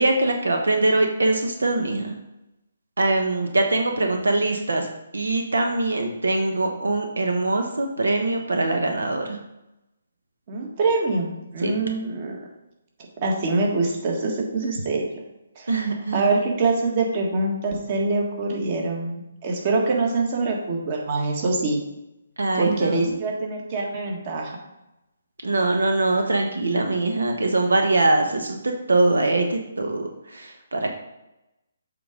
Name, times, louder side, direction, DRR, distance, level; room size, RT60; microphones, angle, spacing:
voice 1, 0.0-2.1 3.0-4.9 5.1-9.4 11.6-11.7 15.7-16.2 22.4-23.1 25.4-30.9, right 2 dB, 80° right, 3 dB, 0.9 m, -22 dB
voice 2, 10.5-12.4 13.2-15.1 15.5-21.8 22.5-24.6, right 3 dB, 40° right, 0 dB, 1.7 m, -24 dB
7.8 x 3.8 x 5.1 m, 0.93 s
figure-of-eight pair, 150°, 0 cm